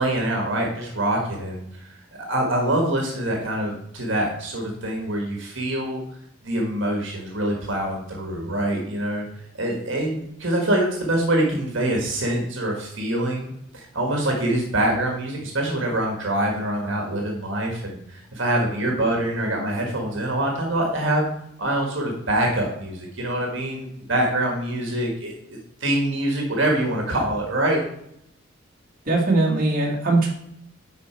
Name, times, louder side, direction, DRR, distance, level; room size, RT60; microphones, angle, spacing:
voice 1, 0.0-6.0 6.4-9.3 9.6-21.3 21.6-27.8, right 1 dB, 70° right, 0 dB, 1.5 m, -25 dB
voice 2, 29.1-30.3, right 2 dB, 45° right, -2 dB, 1.9 m, -20 dB
10.5 x 4.3 x 4.4 m, 0.76 s
head